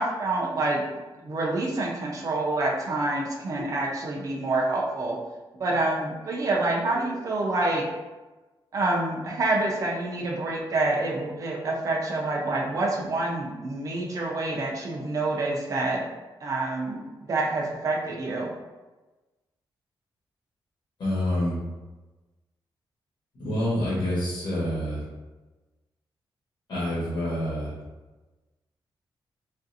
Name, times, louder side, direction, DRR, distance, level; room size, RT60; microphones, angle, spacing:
voice 1, 0.0-5.2 5.5-7.9 8.7-16.1 16.4-18.5, right 2 dB, 40° right, -3 dB, 0.4 m, -27 dB
voice 2, 21.0-21.6 23.4-25.0 26.7-27.7, left 1 dB, 60° left, -8 dB, 1.1 m, -27 dB
3.2 x 2.5 x 2.6 m, 1.2 s
wide cardioid pair, 175°, 9 cm